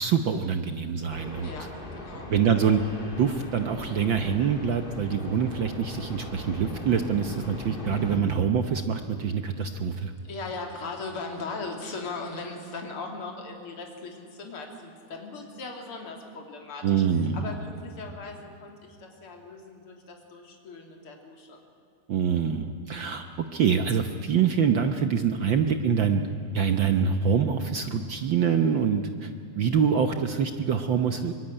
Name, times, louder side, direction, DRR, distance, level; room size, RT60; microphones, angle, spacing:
voice 1, 0.0-1.5 2.3-2.8 3.2-10.1 16.8-17.5 22.1-23.2 23.5-26.2 26.5-29.3 29.6-31.3, right 7 dB, 70° right, 7 dB, 1.1 m, -25 dB
sound 1, 1.1-8.2, left 1 dB, 20° left, 2.5 m, -39 dB
voice 2, 1.4-2.3 10.2-17.0 17.3-21.6, left 3 dB, 50° left, 2 dB, 3.7 m, -39 dB
24.5 x 21.0 x 9.8 m, 2.6 s
omnidirectional pair, 3.3 m